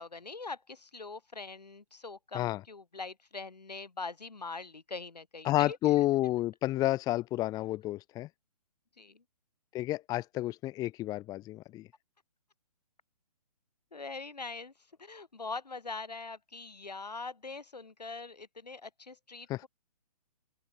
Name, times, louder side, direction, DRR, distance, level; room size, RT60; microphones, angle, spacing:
voice 1, 0.0-5.8 9.0-9.2 13.9-14.7 15.0-19.7, left 3 dB, 80° left, 5.7 m, -42 dB
voice 2, 5.4-8.3 9.7-11.9 19.5-19.7, left 16 dB, 20° left, 1.2 m, -30 dB
open air
figure-of-eight pair, 135°, 20 cm